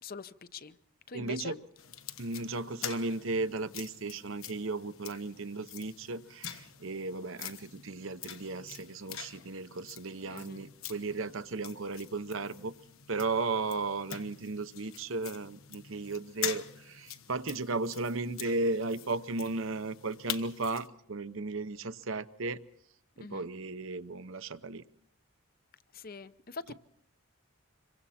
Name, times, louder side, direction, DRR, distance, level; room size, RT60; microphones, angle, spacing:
voice 1, 0.0-0.8 1.1-1.6 10.3-10.6 23.2-23.5 25.9-26.7, left 4 dB, 40° left, 0.7 m, -44 dB
voice 2, 1.1-1.6 2.2-12.7 13.1-22.6 23.2-24.8, right 3 dB, 60° right, 0.8 m, -35 dB
sound 1, 1.8-20.9, left 10 dB, 65° left, 1.2 m, -45 dB
27.0 x 23.5 x 4.3 m
head